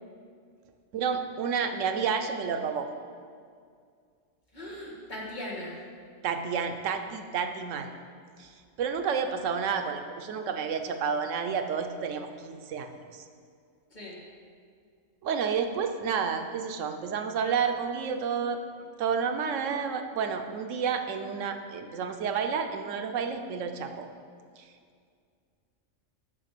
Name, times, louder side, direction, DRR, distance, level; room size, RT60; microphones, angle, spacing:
voice 1, 0.9-2.9 6.2-7.9 8.4-8.5 8.8-13.2 15.2-18.6 19.0-24.1 24.6-24.7, right 6 dB, 85° right, 6 dB, 1.0 m, -30 dB
voice 2, 4.5-5.8 13.9-14.2, left 1 dB, 40° left, -4 dB, 1.7 m, -39 dB
7.4 x 5.9 x 6.5 m, 2.2 s
omnidirectional pair, 1.3 m